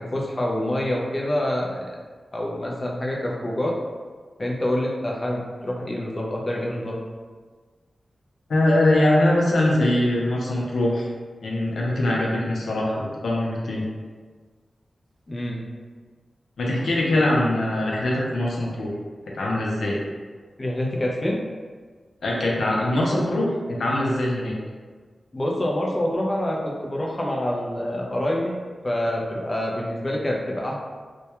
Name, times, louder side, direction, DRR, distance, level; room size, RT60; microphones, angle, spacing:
voice 1, 0.0-1.9 2.3-3.7 4.4-6.9 15.3-15.6 17.1-17.2 20.6-21.4 25.3-30.8, left 1 dB, 35° left, -2 dB, 0.5 m, -26 dB
voice 2, 8.5-11.1 11.4-13.9 16.6-18.9 19.3-20.0 22.2-24.6, left 1 dB, 85° left, -3 dB, 0.5 m, -22 dB
2.2 x 2.2 x 2.9 m, 1.5 s
cardioid pair, 55°, 0 cm